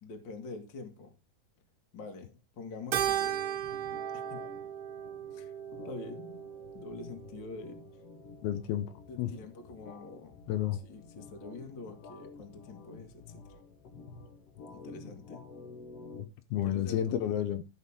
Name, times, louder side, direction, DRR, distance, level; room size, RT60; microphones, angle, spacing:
voice 1, 0.0-1.1 1.9-3.4 4.1-4.4 5.3-5.5 5.8-6.3 6.7-8.0 9.1-10.4 10.7-13.6 14.7-15.4 16.6-17.2, left 3 dB, 40° left, 1.9 m, -46 dB
Keyboard (musical), 2.9-7.5, right 11 dB, 80° right, 2.9 m, -36 dB
sound 1, 3.3-16.2, left 4 dB, 60° left, 1.6 m, -50 dB
voice 2, 8.4-8.9 9.2-9.3 10.5-10.8 16.1-17.6, left 11 dB, 80° left, 2.7 m, -31 dB
14.0 x 5.9 x 3.6 m
omnidirectional pair, 4.5 m